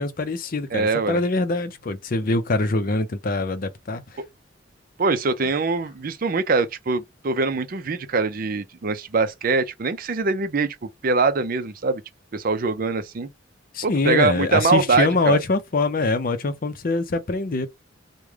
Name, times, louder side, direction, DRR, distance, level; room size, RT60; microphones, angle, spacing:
voice 1, 0.0-4.2 13.7-17.7, left 3 dB, 50° left, 0.6 m, -24 dB
voice 2, 0.7-1.2 5.0-12.0 12.3-13.3 13.8-15.4, right 4 dB, 50° right, 0.5 m, -23 dB
3.2 x 2.2 x 3.5 m
head